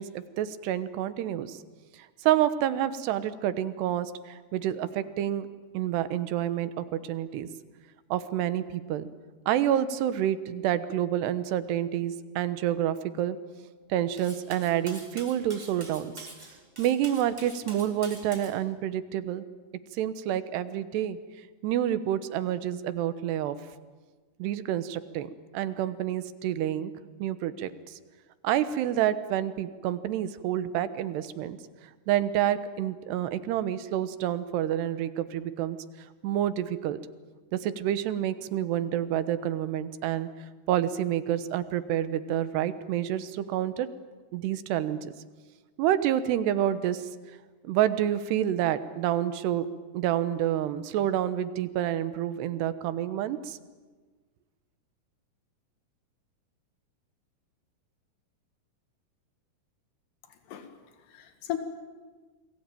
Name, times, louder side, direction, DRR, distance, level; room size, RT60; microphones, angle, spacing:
voice 1, 0.0-1.6 2.2-5.5 5.7-7.5 8.1-9.1 9.5-13.4 13.9-16.3 16.8-19.4 20.0-21.2 21.6-23.6 24.4-26.9 27.2-28.0 28.4-31.6 32.1-35.8 36.2-37.0 37.5-40.3 40.7-43.9 44.3-45.1 45.8-47.1 47.7-49.7 49.9-53.6, right 11 dB, 90° right, 12 dB, 3.2 m, -28 dB
Cutlery silverware, 14.2-18.5, right 1 dB, 10° right, 3.0 m, -46 dB
voice 2, 60.3-60.7 61.1-61.6, left 13 dB, 85° left, 7 dB, 3.8 m, -36 dB
29.0 x 21.5 x 9.1 m, 1.4 s
omnidirectional pair, 4.7 m